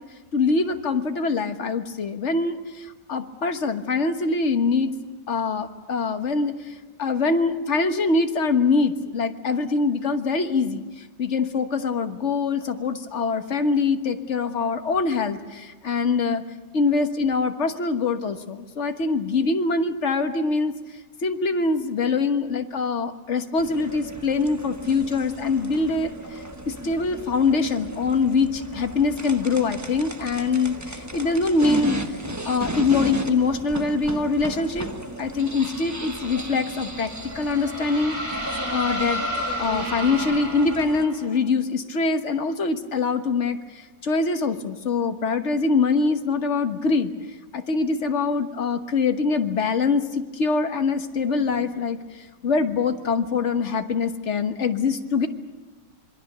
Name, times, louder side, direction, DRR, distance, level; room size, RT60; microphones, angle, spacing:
voice 1, 0.3-4.9 5.3-6.6 7.0-10.8 11.2-16.4 16.7-20.7 21.2-26.4 26.7-32.0 32.5-34.9 35.2-39.2 39.6-43.6 44.0-47.1 47.5-52.0 52.4-55.3, left 4 dB, 45° left, 7 dB, 1.5 m, -24 dB
sound 1, 23.6-41.0, right 1 dB, 15° right, 0.9 m, -35 dB
sound 2, 37.0-41.3, equal, 50° right, 3.8 m, -31 dB
26.5 x 23.0 x 6.8 m, 1.2 s
omnidirectional pair, 1.8 m